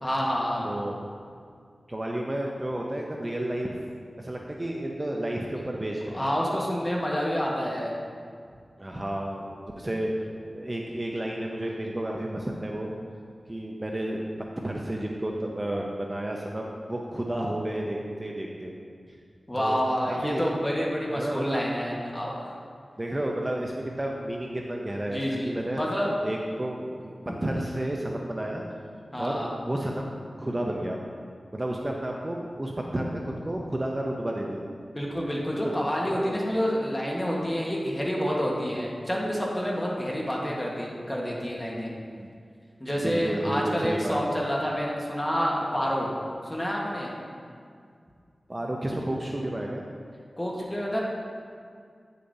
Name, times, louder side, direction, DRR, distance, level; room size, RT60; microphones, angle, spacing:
voice 1, 0.0-0.7 5.5-5.7 6.1-7.9 19.5-22.5 25.1-26.1 29.1-29.5 34.9-41.9 42.8-46.1 46.4-47.1 50.4-51.0, equal, 15° left, -3 dB, 1.4 m, -28 dB
voice 2, 0.6-1.0 1.9-3.7 4.2-6.3 8.8-9.5 9.8-12.9 13.5-14.3 14.6-18.7 19.1-19.2 19.6-19.8 20.1-20.5 21.1-21.6 23.0-25.8 26.2-27.1 27.4-28.6 29.2-31.0 31.5-34.7 35.5-35.8 36.1-36.7 42.1-42.3 43.0-44.2 48.5-49.9, right 1 dB, 25° right, -1 dB, 0.6 m, -31 dB
9.1 x 6.8 x 2.7 m, 2.2 s
wide cardioid pair, 80°, 0 cm